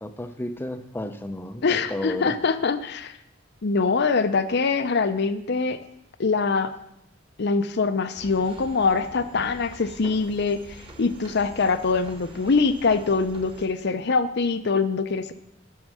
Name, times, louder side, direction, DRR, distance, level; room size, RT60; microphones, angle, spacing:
voice 1, 0.0-2.4, left 1 dB, 10° left, 8 dB, 0.5 m, -33 dB
voice 2, 1.6-3.2 3.6-5.8 6.2-6.7 7.4-10.6 11.0-15.3, left 4 dB, 60° left, 11 dB, 0.6 m, -23 dB
sound 1, 8.2-13.7, right 1 dB, 25° right, 1.4 m, -45 dB
11.0 x 6.4 x 6.3 m, 0.80 s
head